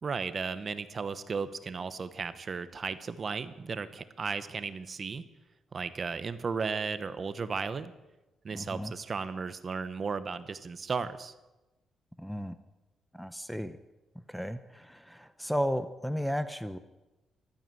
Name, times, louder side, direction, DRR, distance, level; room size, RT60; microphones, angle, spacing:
voice 1, 0.0-5.2 5.7-7.9 8.4-11.3, right 5 dB, 40° right, 13 dB, 0.9 m, -35 dB
voice 2, 8.5-8.9 12.2-12.5 13.1-13.8 14.3-16.8, equal, ahead, 12 dB, 0.7 m, -34 dB
14.5 x 12.5 x 7.7 m, 1.0 s
cardioid pair, 115°, 0 cm